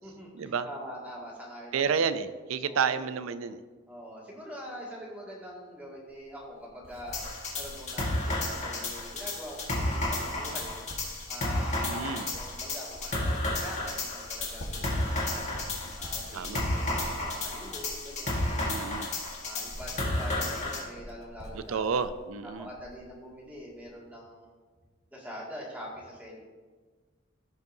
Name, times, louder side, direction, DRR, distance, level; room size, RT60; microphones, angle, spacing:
voice 1, 0.0-2.0 2.6-3.0 3.9-7.2 7.5-19.1 19.4-22.0 22.4-24.5 25.1-26.4, equal, 10° right, -5 dB, 2.1 m, -44 dB
voice 2, 1.7-3.6 11.8-12.3 16.3-16.6 18.6-19.1 21.5-22.7, right 6 dB, 85° right, 12 dB, 0.4 m, -30 dB
Writing, 6.1-23.2 23.4-23.9, equal, 90° left, 1.5 m, -47 dB
sound 1, 7.1-20.8, left 2 dB, 35° left, 1.7 m, -32 dB
15.5 x 5.3 x 2.7 m, 1.4 s
head